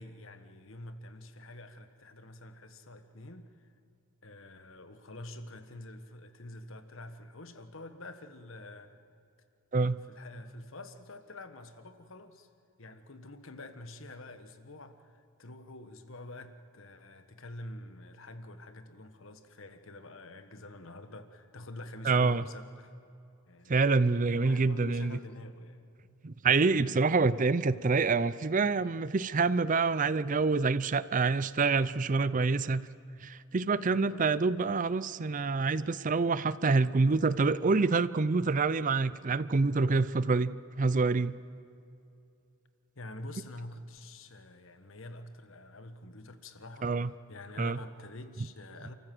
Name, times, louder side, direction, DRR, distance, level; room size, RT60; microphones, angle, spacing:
voice 1, 0.0-3.5 4.2-9.0 10.1-12.5 12.8-22.9 23.5-23.8 24.3-25.8 33.9-34.5 42.9-48.9, left 1 dB, 60° left, 9 dB, 1.4 m, -47 dB
voice 2, 22.0-22.5 23.7-25.2 26.2-32.9 33.2-41.3 46.8-47.1 47.6-47.8, right 4 dB, 35° right, 17 dB, 0.5 m, -27 dB
29.0 x 14.5 x 7.8 m, 2.6 s
head